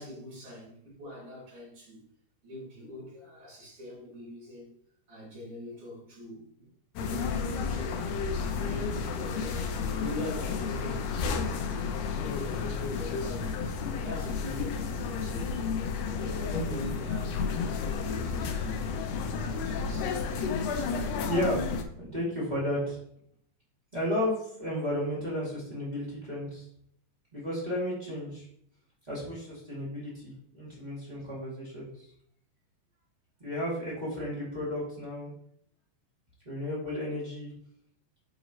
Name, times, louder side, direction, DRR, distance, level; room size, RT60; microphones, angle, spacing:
voice 1, 0.0-2.0 2.4-4.7 5.1-6.7 7.0-8.0 8.3-12.0 12.4-15.5 16.0-18.9 19.3-20.1, equal, 60° right, -4 dB, 3.7 m, -42 dB
sound 1, 7.0-21.8, left 5 dB, 80° left, 1.5 m, -32 dB
voice 2, 21.3-21.7 22.0-23.0 23.9-26.7 27.3-28.4 29.1-32.1 33.4-35.3 36.4-37.5, equal, 15° right, -7 dB, 2.1 m, -33 dB
8.1 x 5.0 x 3.0 m, 0.67 s
omnidirectional pair, 3.8 m